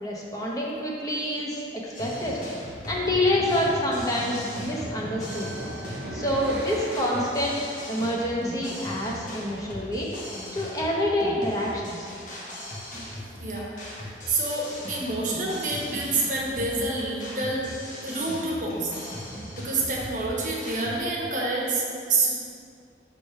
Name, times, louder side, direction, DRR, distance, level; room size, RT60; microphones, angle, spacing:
voice 1, 0.0-2.4 2.9-5.5 6.1-10.1 10.5-12.1, left 1 dB, 20° left, -3 dB, 0.8 m, -27 dB
sound 1, 1.9-21.0, left 1 dB, 45° left, 1.0 m, -39 dB
sound 2, 2.6-8.0, equal, 90° right, 1.0 m, -38 dB
voice 2, 13.4-17.7 18.0-19.3 19.6-22.3, right 2 dB, 45° right, -4 dB, 1.0 m, -28 dB
5.2 x 3.4 x 5.5 m, 2.4 s
head